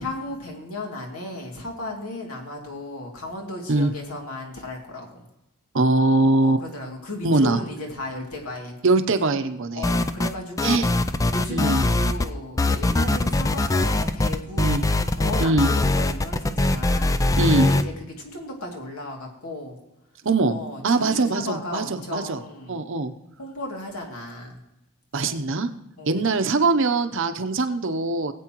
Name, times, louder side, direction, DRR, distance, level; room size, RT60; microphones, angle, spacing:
voice 1, 0.0-5.2 6.4-8.8 9.7-10.9 11.3-19.8 20.5-22.8 23.4-24.6 25.1-25.4 26.0-26.2, left 2 dB, 80° left, 0 dB, 2.6 m, -35 dB
voice 2, 5.7-6.6 7.2-7.6 8.8-9.8 10.6-10.9 11.5-11.8 14.6-14.8 15.4-15.7 17.3-17.7 20.2-20.6 20.8-22.4 22.7-23.1 25.1-25.7 26.1-28.3, right 3 dB, 60° right, 9 dB, 0.8 m, -22 dB
sound 1, 9.8-10.3 10.6-12.3 12.6-17.8, left 2 dB, 15° left, 0.3 m, -22 dB
19.5 x 8.4 x 3.0 m, 0.91 s
head